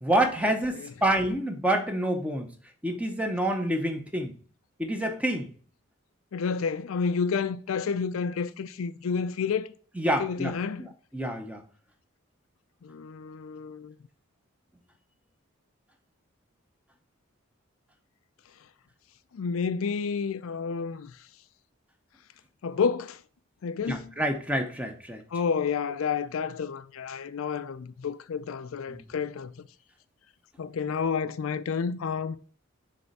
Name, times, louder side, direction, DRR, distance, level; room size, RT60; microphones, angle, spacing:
voice 1, 0.0-2.5 2.8-4.3 4.8-5.5 10.0-10.5 11.1-11.6 23.9-25.2 28.9-29.0, right 1 dB, 5° right, 0.7 m, -27 dB
voice 2, 6.3-9.7 10.0-10.9 12.8-13.9 19.3-21.1 22.6-23.2 23.6-24.1 25.3-29.7 30.6-32.5, left 5 dB, 80° left, 0.4 m, -30 dB
6.9 x 3.3 x 4.1 m
head